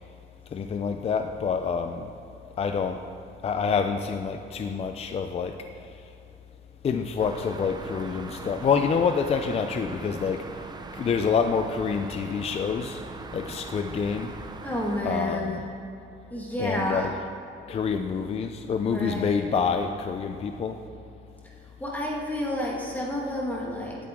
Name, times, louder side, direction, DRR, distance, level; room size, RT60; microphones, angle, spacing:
voice 1, 0.5-2.1 2.6-3.0 3.4-5.5 6.8-10.4 11.0-13.0 13.3-14.3 15.0-15.7 16.6-17.1 17.7-20.8, left 6 dB, 30° left, 6 dB, 0.4 m, -27 dB
sound 1, 7.2-15.0, right 3 dB, 20° right, 0.6 m, -41 dB
voice 2, 14.6-15.6 16.3-17.1 18.8-19.5 21.8-24.0, left 1 dB, 10° left, -3 dB, 1.7 m, -30 dB
17.0 x 8.7 x 3.7 m, 2.9 s
cardioid pair, 150°, 20 cm